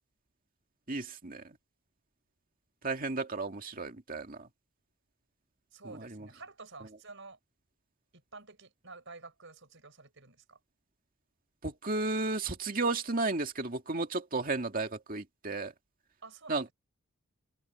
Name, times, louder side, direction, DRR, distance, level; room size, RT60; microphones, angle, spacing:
voice 1, 0.9-1.4 2.8-4.4 6.1-6.3 11.6-15.7 16.5-16.7, right 3 dB, 40° right, 2.2 m, -33 dB
voice 2, 5.7-7.4 8.1-10.6 16.2-16.7, right 3 dB, 60° right, 5.6 m, -50 dB
open air
head